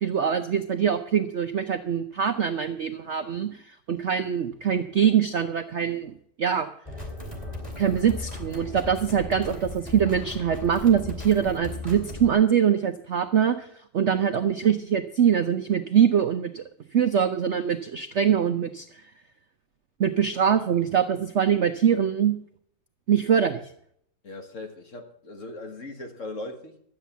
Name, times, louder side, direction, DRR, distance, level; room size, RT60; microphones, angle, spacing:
voice 1, 0.0-6.7 7.8-13.7 13.9-16.6 16.9-18.9 20.0-22.3 23.1-23.6, right 8 dB, 60° right, 0.7 m, -23 dB
sound 1, 6.9-12.3, left 1 dB, 20° left, 2.9 m, -37 dB
voice 2, 24.2-26.8, left 2 dB, 45° left, 1.8 m, -39 dB
12.5 x 8.3 x 7.1 m
omnidirectional pair, 2.0 m